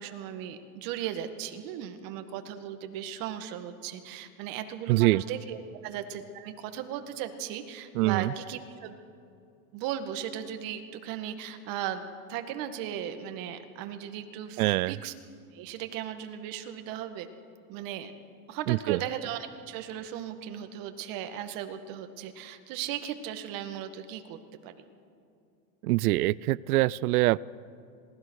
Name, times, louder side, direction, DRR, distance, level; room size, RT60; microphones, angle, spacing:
voice 1, 0.0-9.0 9.7-15.1 15.5-17.3 17.7-18.1 18.5-24.7, right 10 dB, 50° right, 8 dB, 2.0 m, -37 dB
voice 2, 4.9-5.2 7.9-8.3 14.6-15.0 18.7-19.0 25.8-27.4, right 19 dB, 85° right, 23 dB, 0.6 m, -24 dB
26.5 x 19.0 x 6.5 m, 2.5 s
supercardioid pair, 135°, 43 cm